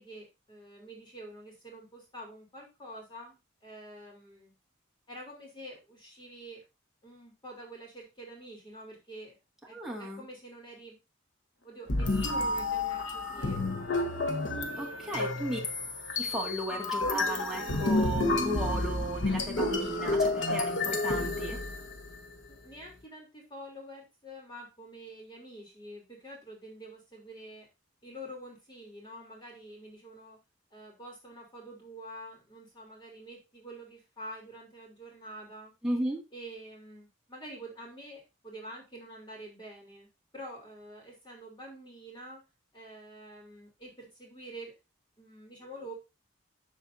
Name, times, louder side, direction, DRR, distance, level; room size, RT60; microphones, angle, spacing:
voice 1, 0.0-4.5 5.1-6.6 7.0-9.4 9.7-11.0 11.6-13.9 14.7-15.4 16.3-16.4 22.5-27.7 28.0-30.4 30.7-35.7 36.3-42.4 42.7-44.8 45.2-45.9, right 1 dB, 25° left, -1 dB, 3.2 m, -47 dB
voice 2, 9.7-10.2 14.8-15.6 16.2-21.6 35.8-36.2, right 1 dB, ahead, -3 dB, 2.0 m, -35 dB
sound 1, 11.9-22.2, left 2 dB, 75° left, 1.2 m, -30 dB
13.0 x 4.4 x 2.7 m, 0.25 s
head